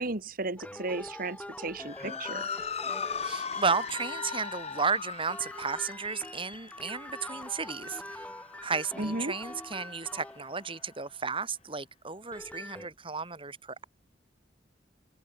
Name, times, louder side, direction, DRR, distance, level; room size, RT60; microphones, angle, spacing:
voice 1, 0.0-2.5 9.0-9.4, right 2 dB, 55° right, 2.2 m, -34 dB
sound 1, 0.6-11.1 12.1-12.9, left 1 dB, 10° left, 1.7 m, -44 dB
Motor vehicle (road) / Siren, 1.8-10.4, left 6 dB, 35° left, 2.5 m, -39 dB
voice 2, 3.2-8.3 8.6-13.8, right 5 dB, 30° right, 3.5 m, -33 dB
head